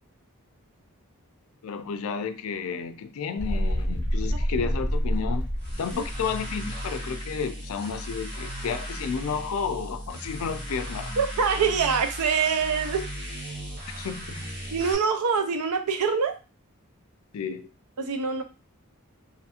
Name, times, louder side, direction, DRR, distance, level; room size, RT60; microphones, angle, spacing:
voice 1, 1.6-5.5 5.8-11.1 14.0-14.5 17.3-17.7, left 6 dB, 75° left, 9 dB, 0.4 m, -32 dB
sound 1, 3.4-7.0, equal, 10° left, 0.9 m, -28 dB
sound 2, 5.6-14.9, equal, 45° right, 0.9 m, -36 dB
voice 2, 11.2-13.1 14.7-16.4 18.0-18.4, right 5 dB, 90° right, 7 dB, 0.5 m, -25 dB
2.5 x 2.4 x 2.7 m, 0.31 s
head